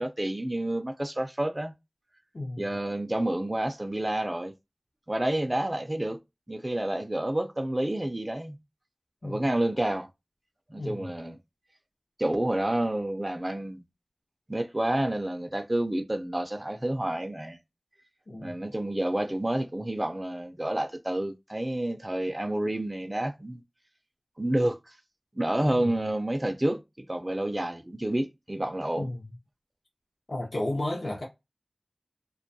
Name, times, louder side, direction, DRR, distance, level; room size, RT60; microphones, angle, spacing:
voice 1, 0.0-1.7 2.6-4.5 5.1-6.2 6.5-8.6 9.2-10.1 10.7-11.4 12.2-13.8 14.5-17.6 18.4-23.6 24.4-24.9 25.3-26.8 27.1-29.1, right 1 dB, 25° right, 0.3 m, -29 dB
voice 2, 2.3-2.6 9.2-9.5 10.8-11.1 18.3-18.5 25.6-26.1 29.0-29.2 30.3-31.2, left 1 dB, 65° left, 0.6 m, -33 dB
2.2 x 2.2 x 2.6 m
wide cardioid pair, 60°, 0 cm